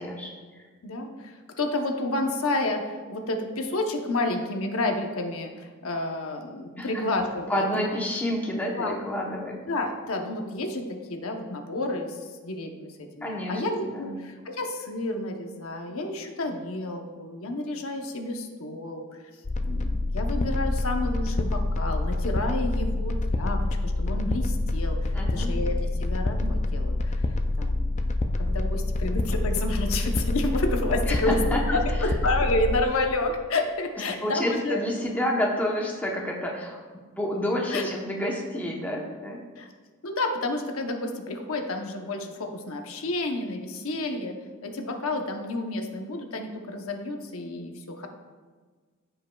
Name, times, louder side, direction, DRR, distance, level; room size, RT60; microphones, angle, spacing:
voice 1, 0.0-0.6 6.8-7.0 7.5-9.6 13.2-14.1 25.1-25.5 31.1-31.6 34.2-36.8 37.2-39.4, left 1 dB, 10° left, -2 dB, 0.9 m, -29 dB
voice 2, 0.8-7.7 8.7-8.9 9.7-19.1 19.6-27.2 27.6-28.1 28.4-34.8 37.7-37.9 39.6-39.7 40.0-44.4 44.6-48.1, left 2 dB, 85° left, 4 dB, 0.9 m, -30 dB
sound 1, 19.4-32.8, left 2 dB, 35° left, 0.4 m, -27 dB
14.0 x 5.5 x 2.3 m, 1.5 s
head